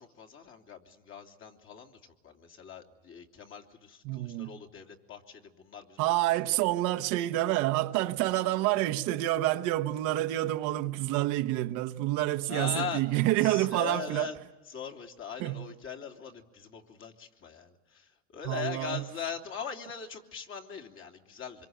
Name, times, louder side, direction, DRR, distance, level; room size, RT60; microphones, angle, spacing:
voice 1, 0.0-6.1 6.4-6.6 8.3-8.8 12.5-13.0 13.4-14.4 14.7-21.7, left 7 dB, 40° left, 3.0 m, -41 dB
voice 2, 4.0-4.6 6.0-14.3 15.4-15.6 18.4-19.0, right 16 dB, 65° right, 1.3 m, -28 dB
26.0 x 23.0 x 9.4 m
supercardioid pair, 120°, 33 cm